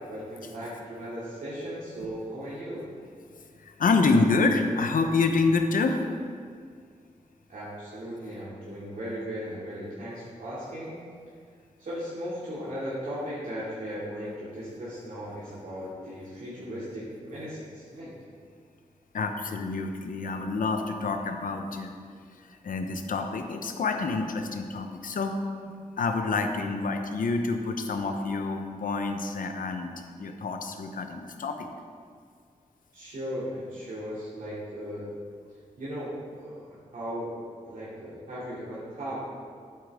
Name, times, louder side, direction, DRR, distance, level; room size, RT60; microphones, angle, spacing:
voice 1, 0.1-3.0 7.5-11.0 11.8-18.1 32.9-35.1 35.8-36.1 36.3-37.3 37.6-39.2, equal, 70° right, -10 dB, 2.6 m, -37 dB
voice 2, 3.6-6.1 19.1-21.9 22.4-25.4 26.0-29.9 30.2-31.7, left 3 dB, 75° left, 5 dB, 0.9 m, -27 dB
12.0 x 8.7 x 3.6 m, 2.1 s
wide cardioid pair, 160°, 14 cm